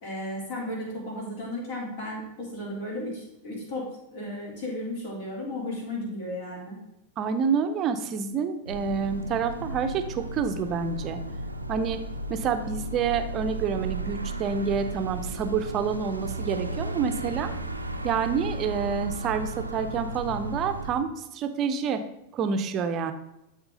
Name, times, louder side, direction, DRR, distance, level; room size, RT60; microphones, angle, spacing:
voice 1, 0.0-3.8 4.1-6.8, left 1 dB, 50° left, -4 dB, 3.5 m, -34 dB
voice 2, 7.2-11.2 11.7-12.0 12.3-17.5 18.0-22.0 22.3-23.1, right 6 dB, 30° right, 9 dB, 0.7 m, -28 dB
sound 1, 8.7-20.9, right 2 dB, 85° right, 0.6 m, -34 dB
12.5 x 4.4 x 3.9 m, 0.88 s
figure-of-eight pair, 90°, 0 cm